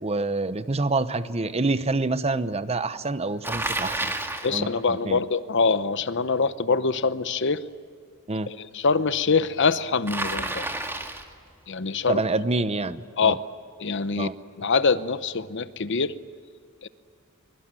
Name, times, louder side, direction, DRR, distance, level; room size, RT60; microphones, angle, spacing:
voice 1, 0.0-4.1 4.5-5.2 8.3-8.5 12.1-13.4 14.2-14.3, right 3 dB, 30° right, 13 dB, 0.9 m, -27 dB
Bicycle, 3.4-4.5 10.1-11.3, right 2 dB, 10° right, 2.0 m, -30 dB
voice 2, 4.4-7.6 8.5-10.6 11.7-12.2 13.2-13.4 13.8-14.3 14.6-16.2 16.8-16.9, left 4 dB, 60° left, 14 dB, 0.9 m, -24 dB
24.5 x 23.5 x 9.0 m, 2.3 s
head